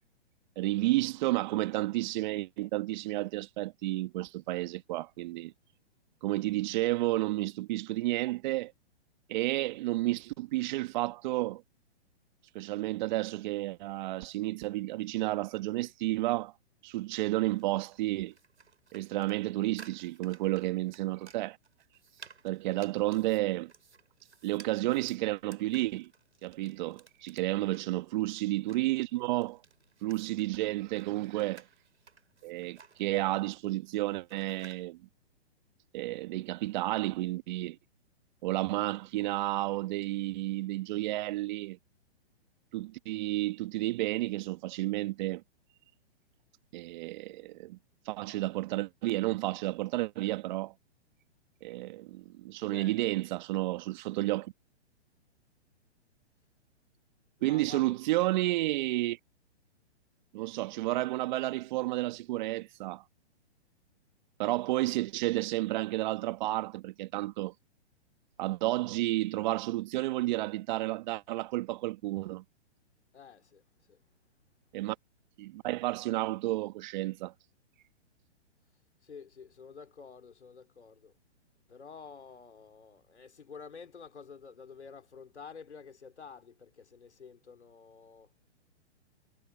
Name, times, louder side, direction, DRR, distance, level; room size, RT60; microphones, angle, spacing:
voice 1, 0.5-5.5 6.2-8.7 9.3-11.6 12.5-16.5 16.8-18.3 18.9-21.6 22.4-23.7 24.4-26.1 26.4-29.6 30.0-31.6 32.4-35.0 35.9-37.8 38.4-41.8 42.7-45.4 46.7-47.8 48.0-50.7 51.6-54.5 57.4-59.2 60.3-63.0 64.4-67.5 68.4-72.4 74.7-74.9 75.4-77.3, right 18 dB, 45° right, 1.8 m, -31 dB
sound 1, 17.3-34.8, right 5 dB, 85° right, 6.9 m, -57 dB
voice 2, 52.6-53.2 57.4-58.0 73.1-73.6 73.9-74.0 79.0-81.1 81.7-88.3, left 6 dB, 85° left, 3.3 m, -50 dB
hypercardioid pair, 130°, 33 cm